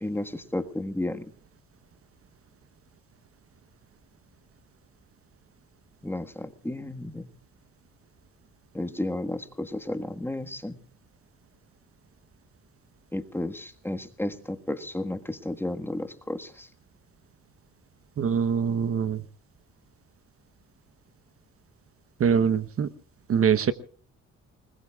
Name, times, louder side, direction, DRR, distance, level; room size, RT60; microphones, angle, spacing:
voice 1, 0.0-1.3 6.0-7.3 8.7-10.8 13.1-16.7, left 1 dB, 5° left, 8 dB, 1.6 m, -33 dB
voice 2, 18.2-19.2 22.2-22.9 23.3-23.7, right 7 dB, 50° right, 13 dB, 1.1 m, -23 dB
29.0 x 20.5 x 2.4 m, 0.43 s
cardioid pair, 90°, 30 cm